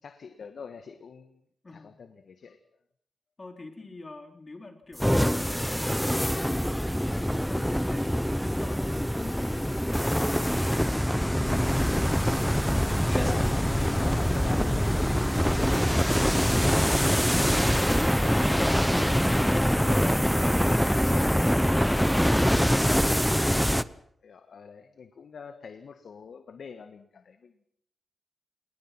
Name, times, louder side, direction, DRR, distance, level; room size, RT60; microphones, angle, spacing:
voice 1, 0.0-1.4 1.7-2.6 13.2-16.9 17.4-20.5 21.0-22.6 24.2-27.6, left 6 dB, 75° left, 8 dB, 1.6 m, -44 dB
voice 2, 1.6-2.0 3.4-11.5, left 3 dB, 30° left, 5 dB, 3.9 m, -46 dB
sound 1, 5.0-23.8, equal, ahead, 0.9 m, -24 dB
27.0 x 20.0 x 6.0 m, 0.68 s
wide cardioid pair, 100°, 0 cm